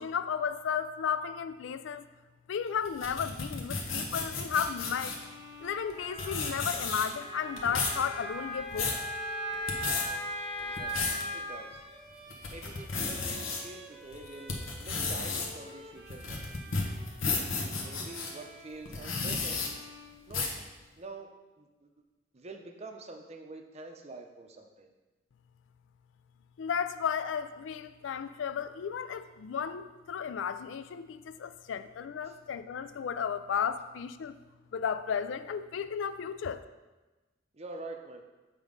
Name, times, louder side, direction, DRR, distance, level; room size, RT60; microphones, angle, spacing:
voice 1, 0.0-2.0 2.5-5.2 5.6-8.9 26.6-34.3 34.7-36.6, left 7 dB, 65° left, 12 dB, 0.3 m, -34 dB
sound 1, 2.8-5.2 5.9-6.0 6.2-7.2 7.6-8.0 8.5-9.0 9.5-10.0 10.6-11.2 11.7-11.8 12.3-13.6 14.1-18.3 18.9-19.7 20.3-20.6, left 4 dB, 90° left, 1.1 m, -33 dB
Bowed string instrument, 4.7-20.8, equal, 5° right, 0.9 m, -51 dB
Wind instrument woodwind instrument, 5.9-11.6, equal, 30° left, 0.9 m, -38 dB
voice 2, 10.6-11.8 12.5-16.8 17.5-19.6 20.3-20.5 21.0-21.3 21.6-21.9 22.3-24.9 32.2-32.3 37.5-38.2, right 2 dB, 30° right, 3 dB, 0.6 m, -46 dB
7.1 x 3.7 x 5.2 m, 1.2 s
head